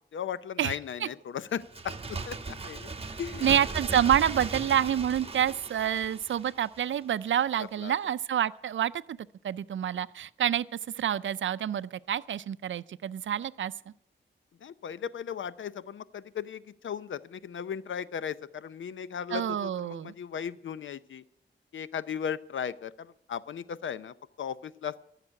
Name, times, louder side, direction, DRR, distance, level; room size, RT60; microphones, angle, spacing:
voice 1, 0.0-2.9 3.2-3.5 7.6-7.9 14.6-21.2 21.7-25.0, left 8 dB, 75° left, 16 dB, 0.6 m, -37 dB
voice 2, 0.6-1.1 3.4-9.2 9.4-10.7 11.0-13.7 19.3-20.1, right 10 dB, 75° right, 17 dB, 0.5 m, -28 dB
Bird, 1.6-7.1 7.4-7.5, right 4 dB, 30° right, 1.1 m, -38 dB
14.5 x 6.7 x 9.7 m, 0.76 s
wide cardioid pair, 90°, 20 cm